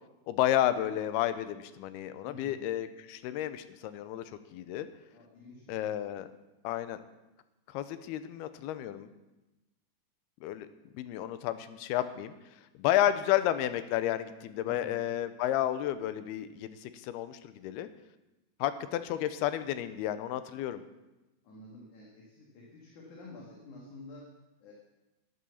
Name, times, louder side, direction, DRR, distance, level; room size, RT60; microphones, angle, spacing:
voice 1, 0.3-4.2 4.5-4.9 5.7-6.3 6.6-7.0 7.7-9.1 10.4-10.7 10.9-12.3 12.8-17.9 18.6-20.8, left 12 dB, 80° left, 12 dB, 2.7 m, -31 dB
voice 2, 2.2-2.7 5.1-5.9 14.6-15.1 21.4-24.3 24.6-24.7, left 2 dB, 55° left, -2 dB, 3.1 m, -50 dB
11.0 x 10.5 x 7.1 m, 1.0 s
omnidirectional pair, 4.6 m